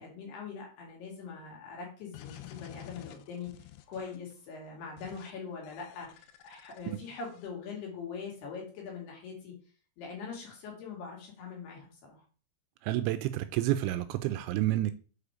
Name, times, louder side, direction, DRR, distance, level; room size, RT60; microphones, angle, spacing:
voice 1, 0.0-9.5 10.0-12.2, left 5 dB, 60° left, 4.1 m, -42 dB
sound 1, 2.1-4.3 5.0-5.3 5.6-7.5, left 13 dB, 80° left, 2.9 m, -50 dB
voice 2, 12.8-14.9, right 14 dB, 85° right, 2.8 m, -29 dB
8.2 x 5.0 x 4.9 m
omnidirectional pair, 5.6 m